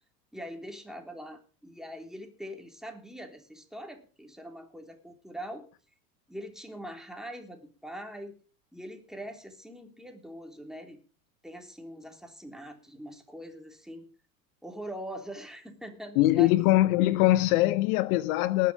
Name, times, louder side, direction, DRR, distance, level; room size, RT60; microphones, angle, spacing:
voice 1, 0.3-5.6 6.3-8.3 8.7-11.0 11.4-14.1 14.6-16.7, equal, ahead, 3.4 m, -42 dB
voice 2, 16.2-18.7, left 16 dB, 60° left, 0.8 m, -22 dB
19.5 x 7.5 x 5.1 m
hypercardioid pair, 85°, 50 cm